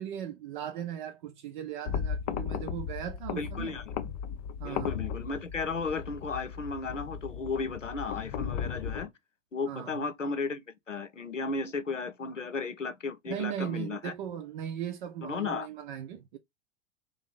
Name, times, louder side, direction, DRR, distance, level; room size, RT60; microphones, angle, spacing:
voice 1, 0.0-3.7 4.6-5.0 9.7-10.0 13.3-16.4, right 10 dB, 40° right, 0.6 m, -38 dB
sound 1, 1.9-9.1, left 7 dB, 25° left, 0.3 m, -36 dB
voice 2, 3.4-3.8 4.6-9.1 9.5-10.6 10.9-14.1 15.2-15.7, left 4 dB, 85° left, 0.7 m, -34 dB
3.1 x 2.7 x 3.8 m
figure-of-eight pair, 90°, 36 cm